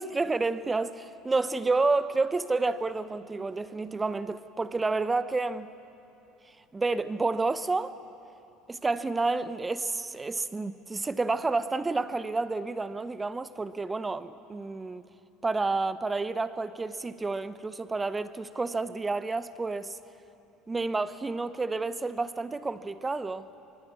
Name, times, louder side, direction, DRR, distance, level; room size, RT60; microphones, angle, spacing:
voice 1, 0.0-5.7 6.7-7.9 8.7-15.0 15.4-20.0 20.7-23.5, right 3 dB, 20° right, 0.9 m, -30 dB
24.5 x 24.5 x 7.0 m
figure-of-eight pair, 65°, 0 cm